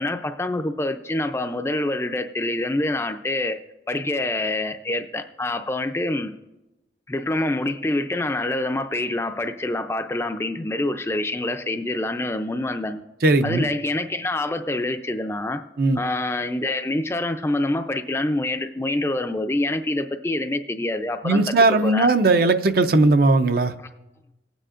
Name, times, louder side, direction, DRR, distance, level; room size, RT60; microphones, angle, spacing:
voice 1, 0.0-3.6 3.9-6.3 7.1-13.0 13.4-15.6 16.0-21.5 21.8-22.1, left 2 dB, 15° left, 7 dB, 0.4 m, -26 dB
voice 2, 13.2-13.6 15.8-16.0 21.2-23.7, right 2 dB, 55° right, 9 dB, 0.5 m, -18 dB
25.5 x 9.1 x 2.5 m, 1.0 s
head